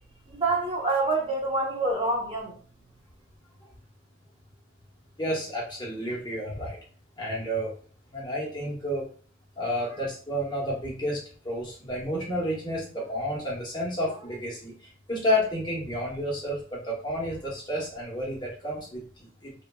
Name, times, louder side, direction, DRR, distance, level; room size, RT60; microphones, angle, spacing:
voice 1, 0.3-2.6, right 2 dB, 30° right, 0.7 m, -26 dB
voice 2, 5.2-6.8 7.2-7.7 8.1-9.1 9.6-19.5, equal, 25° left, 1.0 m, -31 dB
3.0 x 2.3 x 2.2 m
head